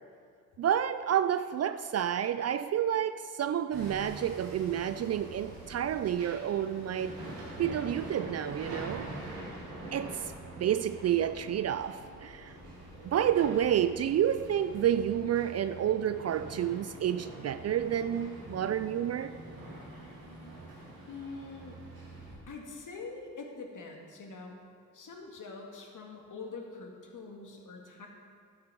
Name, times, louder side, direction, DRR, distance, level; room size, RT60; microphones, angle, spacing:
voice 1, 0.6-7.2 7.6-9.3 9.9-12.5 13.0-19.3, right 10 dB, 40° right, 0.4 m, -30 dB
Hammer, 3.7-22.3, right 1 dB, 85° right, 2.3 m, -45 dB
voice 2, 21.1-21.8 22.5-24.6 24.9-28.1, left 4 dB, 50° left, 2.0 m, -44 dB
12.0 x 7.4 x 4.6 m
hypercardioid pair, 45°, 40 cm